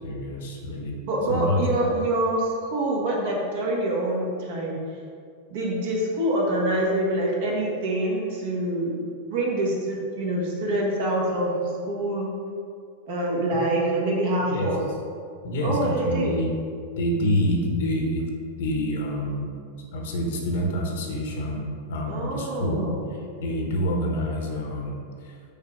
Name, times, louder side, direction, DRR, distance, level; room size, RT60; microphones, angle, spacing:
voice 1, 0.0-1.0 1.3-1.7 14.5-14.7 15.4-16.5 17.0-18.3 18.6-19.5 19.8-22.9 23.4-25.4, equal, 55° left, 1 dB, 1.1 m, -27 dB
voice 2, 1.0-4.8 5.5-9.0 9.3-11.5 11.8-12.3 13.0-14.8 15.6-16.4 22.1-23.1, right 1 dB, 55° right, -3 dB, 1.6 m, -25 dB
5.7 x 4.4 x 5.0 m, 2.3 s
figure-of-eight pair, 90°, 0 cm